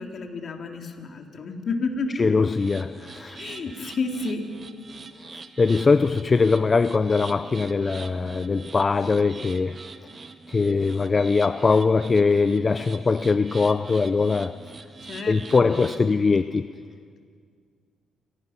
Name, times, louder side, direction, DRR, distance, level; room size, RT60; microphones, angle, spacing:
voice 1, 0.0-2.2 3.4-4.5 15.0-16.0, left 3 dB, 55° left, 2.9 m, -31 dB
voice 2, 2.2-3.4 5.2-9.8 10.5-14.6 15.3-16.7, left 4 dB, 35° left, 0.6 m, -21 dB
sound 1, 2.5-16.1, right 4 dB, 40° right, 1.6 m, -43 dB
29.0 x 18.0 x 5.8 m
cardioid pair, 75°, 0 cm